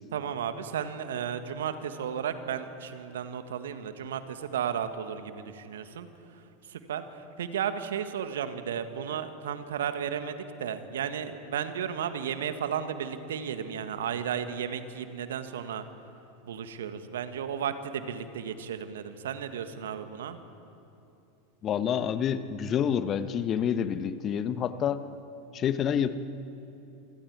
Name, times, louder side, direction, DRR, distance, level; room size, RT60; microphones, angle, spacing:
voice 1, 0.1-6.1 6.7-15.8 16.4-20.4, right 8 dB, 70° right, 9 dB, 1.6 m, -34 dB
voice 2, 21.6-25.1 25.5-26.2, left 8 dB, 35° left, 12 dB, 1.2 m, -28 dB
28.0 x 26.0 x 4.9 m, 2.8 s
figure-of-eight pair, 85°, 0 cm